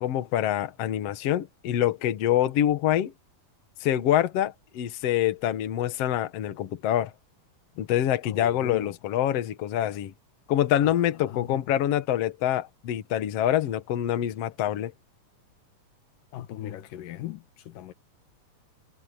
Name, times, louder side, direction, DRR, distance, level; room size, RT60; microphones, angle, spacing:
voice 1, 0.0-3.1 3.8-7.1 7.8-10.1 10.5-14.9, left 11 dB, 55° left, 2.1 m, -25 dB
voice 2, 8.3-9.0 10.8-11.0 11.2-11.6 16.3-17.9, left 12 dB, 85° left, 2.9 m, -39 dB
omnidirectional pair, 3.8 m